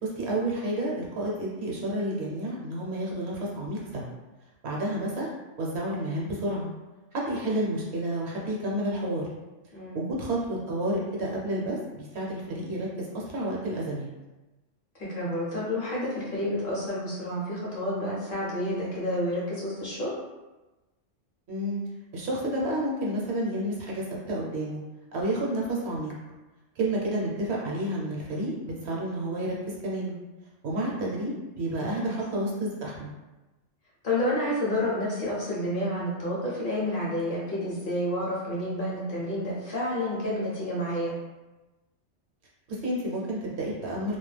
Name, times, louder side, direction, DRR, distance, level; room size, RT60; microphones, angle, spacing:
voice 1, 0.0-4.1 4.6-5.3 5.6-6.7 7.1-9.3 9.9-14.1 21.5-21.8 22.1-24.8 25.1-26.1 26.8-30.2 30.6-31.3 31.6-33.1 42.7-44.2, right 1 dB, 65° right, -3 dB, 0.8 m, -30 dB
voice 2, 9.7-10.0 15.0-20.1 31.7-32.1 34.0-41.1, left 1 dB, 50° left, -7 dB, 0.8 m, -29 dB
2.3 x 2.1 x 3.2 m, 1.1 s
omnidirectional pair, 1.3 m